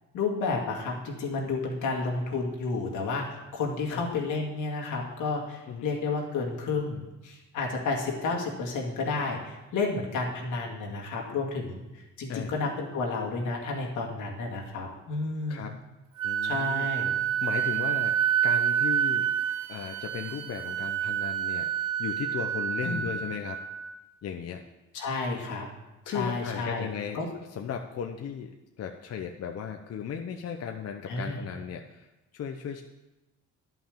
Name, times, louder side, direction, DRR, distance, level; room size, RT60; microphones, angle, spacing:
voice 1, 0.1-15.7 16.4-17.1 22.8-23.0 24.9-25.7 26.1-26.9 27.1-27.3 31.1-31.4, left 3 dB, 85° left, -1 dB, 2.3 m, -31 dB
voice 2, 16.2-16.9 17.4-19.3 19.7-23.6 24.2-24.6 26.1-27.2 27.5-32.1 32.3-32.8, left 7 dB, 55° left, 4 dB, 0.8 m, -36 dB
Wind instrument woodwind instrument, 16.2-23.9, right 10 dB, 85° right, 1.0 m, -28 dB
11.0 x 5.8 x 7.3 m, 1.0 s
cardioid pair, 90°, 30 cm